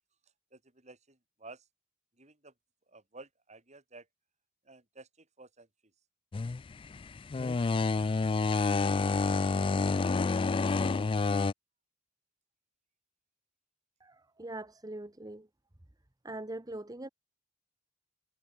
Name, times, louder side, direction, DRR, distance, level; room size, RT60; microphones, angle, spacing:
voice 1, 0.5-1.7 2.1-2.5 2.9-4.1 4.6-5.9, right 3 dB, 40° right, 6.9 m, -53 dB
sound 1, 6.3-11.5, left 4 dB, 30° left, 0.3 m, -28 dB
voice 2, 14.0-15.5 16.2-17.1, right 2 dB, 20° right, 1.1 m, -42 dB
head